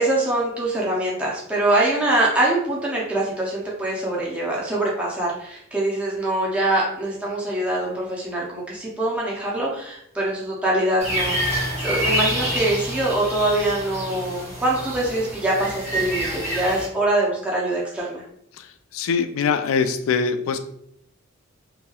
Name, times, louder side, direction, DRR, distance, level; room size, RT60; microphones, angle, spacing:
voice 1, 0.0-11.4 11.8-18.2, right 1 dB, 5° right, -5 dB, 0.5 m, -23 dB
sound 1, 11.0-16.9, right 1 dB, 35° right, 1.1 m, -27 dB
voice 2, 18.6-20.6, left 5 dB, 80° left, 10 dB, 0.3 m, -23 dB
2.9 x 2.7 x 2.3 m, 0.72 s
head